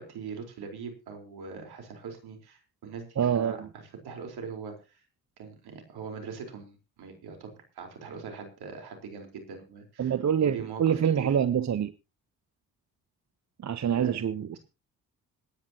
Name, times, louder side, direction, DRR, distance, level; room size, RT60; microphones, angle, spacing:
voice 1, 0.0-5.0 5.4-10.1 10.4-11.3 14.0-14.1, right 5 dB, 70° right, 4.5 m, -42 dB
voice 2, 3.2-3.7 10.0-11.9 13.6-14.6, right 8 dB, 45° right, 1.0 m, -26 dB
26.0 x 9.9 x 3.0 m
hypercardioid pair, 45°, 40 cm